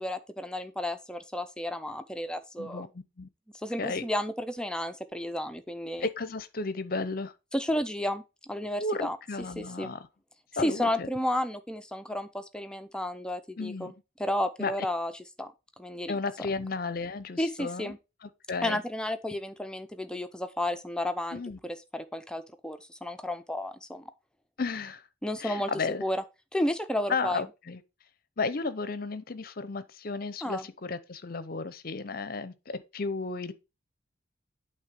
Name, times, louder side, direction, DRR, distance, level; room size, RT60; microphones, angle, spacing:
voice 1, 0.0-2.9 3.6-6.1 7.5-9.2 9.6-9.9 10.6-13.9 14.2-15.5 15.8-16.2 17.4-18.0 18.6-24.0 25.2-25.7 26.0-26.2 26.5-27.4 30.4-30.7, left 1 dB, 5° left, 0.4 m, -32 dB
voice 2, 2.6-3.3 3.8-4.0 6.0-7.3 8.8-10.1 10.6-11.1 13.6-13.9 14.6-14.7 16.1-17.9 18.2-18.8 21.3-21.6 24.6-25.0 25.4-26.0 27.1-27.8 28.4-33.5, left 4 dB, 45° left, 0.6 m, -33 dB
8.6 x 3.3 x 5.2 m
head